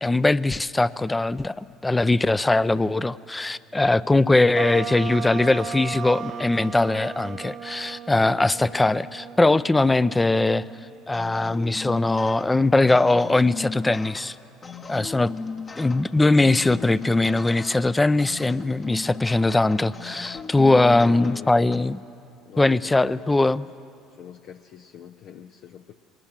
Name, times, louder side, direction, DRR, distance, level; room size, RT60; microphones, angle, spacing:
voice 1, 0.0-10.6 11.1-14.4 14.9-15.3 15.8-22.0 22.6-23.7, left 2 dB, 15° left, 18 dB, 0.5 m, -21 dB
sound 1, 4.5-11.2, right 7 dB, 45° right, 0.9 m, -36 dB
sound 2, 11.1-21.8, left 4 dB, 35° left, 1.2 m, -38 dB
voice 2, 20.8-21.5 22.5-23.7 24.1-25.9, left 9 dB, 60° left, 8 dB, 0.6 m, -42 dB
20.5 x 19.0 x 7.4 m, 2.6 s
hypercardioid pair, 65°, 0 cm